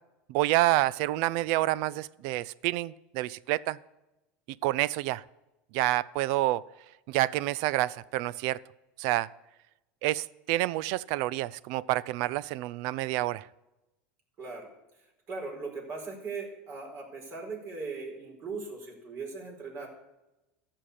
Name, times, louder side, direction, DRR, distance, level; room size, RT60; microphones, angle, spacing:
voice 1, 0.3-3.8 4.6-5.2 5.7-6.6 7.1-8.6 9.0-9.3 10.0-13.5, right 17 dB, 60° right, 21 dB, 0.4 m, -28 dB
voice 2, 14.4-14.7 15.3-19.9, right 4 dB, 45° right, 0 dB, 4.6 m, -39 dB
13.5 x 5.9 x 8.3 m, 0.98 s
supercardioid pair, 115°, 7 cm